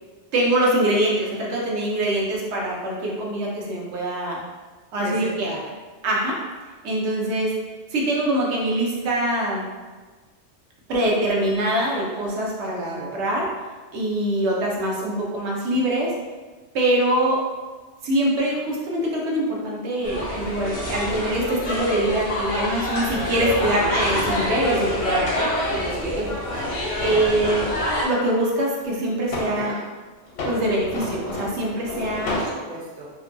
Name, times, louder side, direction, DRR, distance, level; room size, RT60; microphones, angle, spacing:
voice 1, 0.3-4.4 4.9-5.5 6.0-6.4 6.8-7.5 7.9-9.7 10.9-13.4 13.9-16.1 16.7-17.4 18.0-25.5 26.0-26.3 27.0-27.7 28.0-29.7 30.4-32.4, right 1 dB, 85° right, -3 dB, 0.9 m, -23 dB
voice 2, 5.0-5.6 12.6-13.2 25.7-26.8 27.1-27.3 29.5-29.9 32.3-33.1, right 1 dB, 50° right, -4 dB, 0.5 m, -34 dB
sound 1, 20.0-28.1, equal, 50° left, 0.4 m, -27 dB
sound 2, 22.9-28.0 28.8-29.6 30.2-32.6, left 2 dB, 75° left, 0.8 m, -33 dB
2.6 x 2.2 x 2.5 m, 1.4 s
omnidirectional pair, 1.1 m